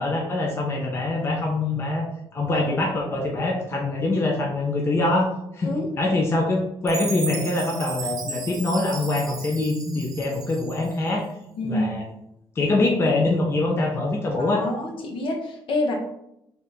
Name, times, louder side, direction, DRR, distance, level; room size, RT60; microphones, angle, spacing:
voice 1, 0.0-2.1 2.3-5.7 6.0-11.3 11.6-12.0 12.6-14.6, left 2 dB, 25° left, -1 dB, 0.6 m, -24 dB
Chime, 6.9-11.1, right 5 dB, 40° right, 0.7 m, -35 dB
voice 2, 11.6-11.9 14.4-15.9, left 2 dB, 60° left, 1 dB, 1.0 m, -27 dB
3.5 x 2.5 x 4.4 m, 0.81 s
cardioid pair, 145°, 10 cm